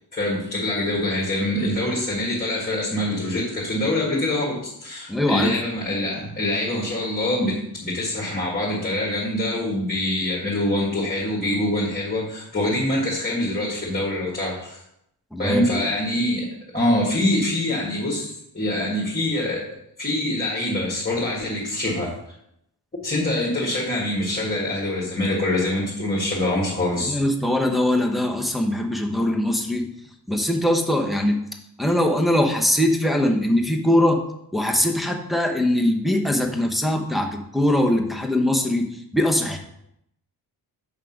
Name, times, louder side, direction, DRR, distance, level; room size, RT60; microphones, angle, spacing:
voice 1, 0.1-14.8 15.4-16.5 16.7-19.6 20.0-22.1 23.0-27.2, left 1 dB, 25° left, -4 dB, 1.6 m, -24 dB
voice 2, 5.1-5.5 15.3-15.8 27.0-29.9 30.3-31.4 31.8-34.2 34.5-39.6, left 1 dB, ahead, 1 dB, 0.8 m, -21 dB
5.8 x 4.9 x 5.8 m, 0.77 s
wide cardioid pair, 145°, 39 cm